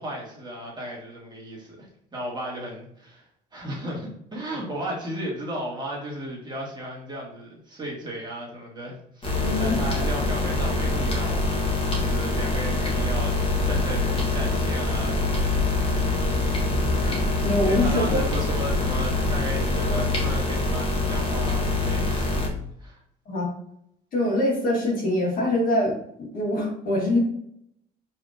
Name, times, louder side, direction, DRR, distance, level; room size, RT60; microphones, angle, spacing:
voice 1, 0.0-3.2 3.5-13.4 13.6-15.6 17.6-22.3 22.8-23.0, equal, 25° right, -3 dB, 1.8 m, -35 dB
sound 1, 9.2-22.5, left 2 dB, 35° left, 1.4 m, -24 dB
voice 2, 9.4-9.7 17.0-18.2 19.8-20.0 23.3-23.5 24.1-27.2, left 1 dB, 55° left, -2 dB, 1.7 m, -24 dB
4.9 x 3.4 x 2.7 m, 0.71 s
cardioid pair, 110°, 17 cm